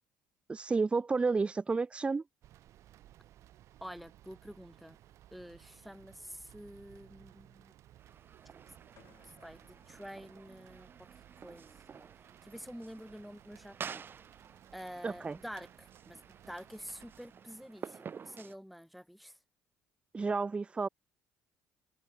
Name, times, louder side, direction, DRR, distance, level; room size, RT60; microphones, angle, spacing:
voice 1, 0.5-2.2 15.0-15.4 20.1-20.9, right 4 dB, 20° right, 0.4 m, -31 dB
sound 1, 2.4-17.7, right 13 dB, 65° right, 2.1 m, -60 dB
voice 2, 3.8-5.0 5.3-7.7 9.4-11.1 11.4-12.1 12.4-14.0 14.7-19.4, equal, ahead, 2.0 m, -48 dB
sound 2, 8.0-18.6, right 6 dB, 40° right, 3.9 m, -50 dB
sound 3, 9.0-11.1, left 14 dB, 70° left, 6.9 m, -67 dB
supercardioid pair, 75°, 5 cm